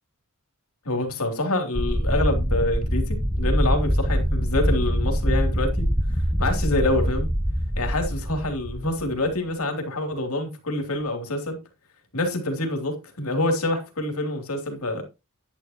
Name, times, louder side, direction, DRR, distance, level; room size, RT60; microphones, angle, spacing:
voice 1, 0.8-5.9 6.4-7.3 7.8-11.6 12.1-15.0, left 2 dB, 70° left, 3.0 m, -26 dB
sound 1, 1.8-9.3, equal, ahead, 0.8 m, -24 dB
11.0 x 10.5 x 3.0 m
head